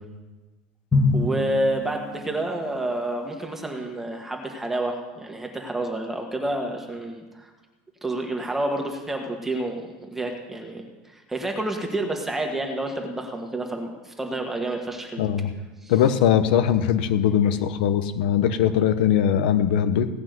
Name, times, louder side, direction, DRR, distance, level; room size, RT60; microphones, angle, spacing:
Drum, 0.9-2.7, left 3 dB, 10° left, 1.6 m, -25 dB
voice 1, 1.1-7.5 8.0-15.2 15.8-15.9, right 1 dB, 5° right, 2 dB, 1.5 m, -29 dB
voice 2, 15.2-15.5 15.9-20.1, left 9 dB, 75° left, 10 dB, 1.0 m, -21 dB
17.0 x 5.9 x 9.3 m, 1.3 s
supercardioid pair, 175°, 5 cm